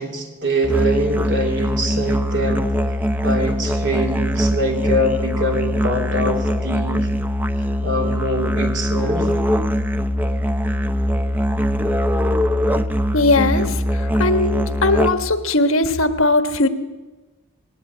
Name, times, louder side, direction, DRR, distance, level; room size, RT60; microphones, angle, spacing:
voice 1, 0.0-2.7 3.2-7.1 7.6-9.3, equal, 55° right, 2 dB, 3.3 m, -23 dB
Musical instrument, 0.6-15.4, equal, 10° right, 0.6 m, -21 dB
voice 2, 13.1-16.7, left 2 dB, 70° left, 8 dB, 1.3 m, -19 dB
20.0 x 17.0 x 8.5 m, 1.2 s
head